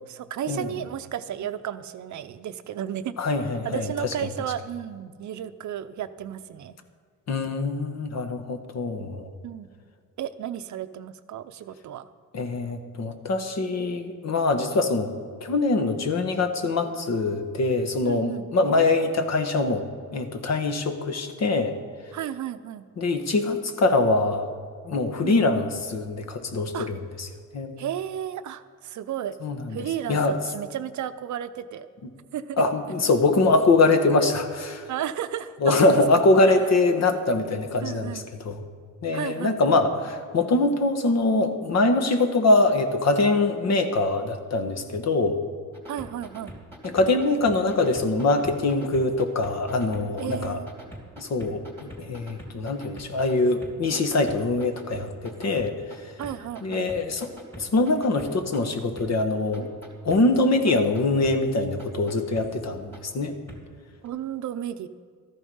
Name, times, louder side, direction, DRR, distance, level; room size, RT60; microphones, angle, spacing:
voice 1, 0.0-3.2 3.6-6.7 9.4-9.7 10.2-12.1 18.0-18.5 22.1-22.8 25.2-25.4 26.7-26.9 27.8-29.3 29.7-31.9 32.3-32.6 34.9-36.0 36.5-36.6 37.8-38.3 39.1-39.8 45.9-46.6 50.2-50.7 56.2-56.9 64.0-64.9, right 10 dB, 60° right, 11 dB, 0.6 m, -33 dB
voice 2, 3.2-4.1 7.3-9.3 12.3-15.1 15.4-19.8 20.1-21.8 23.0-24.5 24.8-27.3 27.5-27.7 29.4-29.8 30.1-30.3 32.6-34.9 35.6-38.6 39.0-45.4 46.8-50.6 51.2-55.7 56.0-56.1 56.6-57.3 57.6-59.7 60.0-63.3, left 2 dB, 50° left, 7 dB, 1.4 m, -23 dB
sound 1, 45.7-53.3 53.6-56.0 56.2-58.6 59.0-59.1 59.5-60.2 60.7-61.3 61.8-62.5 62.9-63.0 63.5-63.6 64.0-64.1, equal, 5° left, 2.8 m, -42 dB
13.5 x 11.0 x 5.5 m, 2.1 s
cardioid pair, 105°, 33 cm